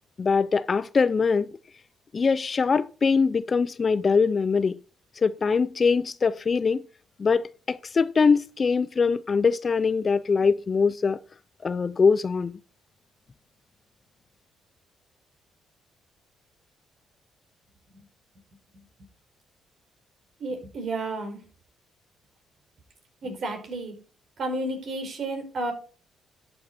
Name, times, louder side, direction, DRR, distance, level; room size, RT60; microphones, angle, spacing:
voice 1, 0.2-1.5 2.1-4.7 5.2-6.8 7.2-11.2 11.6-12.6, left 5 dB, 35° left, 0.6 m, -23 dB
voice 2, 20.4-21.4 23.2-23.9 24.4-25.7, right 2 dB, 55° right, 5.1 m, -31 dB
12.0 x 7.7 x 4.3 m
cardioid pair, 90°, 0 cm